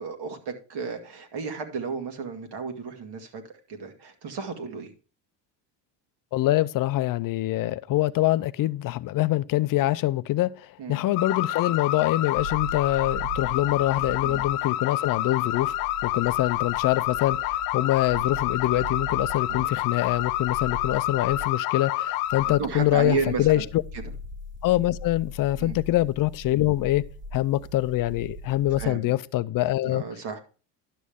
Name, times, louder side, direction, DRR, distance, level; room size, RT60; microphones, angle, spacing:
voice 1, 0.0-3.4 3.7-4.9 10.8-11.0 14.2-14.4 19.5-19.6 22.5-23.7 25.6-25.8 28.8-29.1 29.8-30.4, right 4 dB, 50° right, 2.1 m, -32 dB
voice 2, 6.3-15.7 16.0-23.8 24.6-27.1 27.3-30.0, left 15 dB, 45° left, 0.5 m, -24 dB
sound 1, 11.2-22.6, left 14 dB, 80° left, 0.8 m, -28 dB
sound 2, 12.4-21.5 22.2-28.9, equal, 25° right, 0.9 m, -40 dB
11.5 x 6.3 x 3.6 m
supercardioid pair, 100°, 50 cm